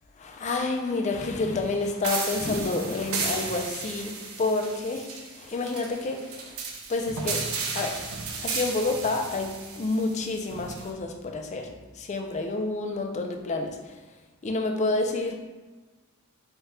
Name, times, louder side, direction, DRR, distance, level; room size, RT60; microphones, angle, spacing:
voice 1, 0.2-4.1 4.4-5.1 5.4-6.6 6.9-7.4 7.7-8.0 8.4-11.7 12.0-13.8 14.4-15.4, left 3 dB, 30° left, 3 dB, 0.4 m, -29 dB
sound 1, 2.0-10.9, right 4 dB, 65° right, 0.5 m, -34 dB
3.6 x 2.3 x 4.2 m, 1.2 s
head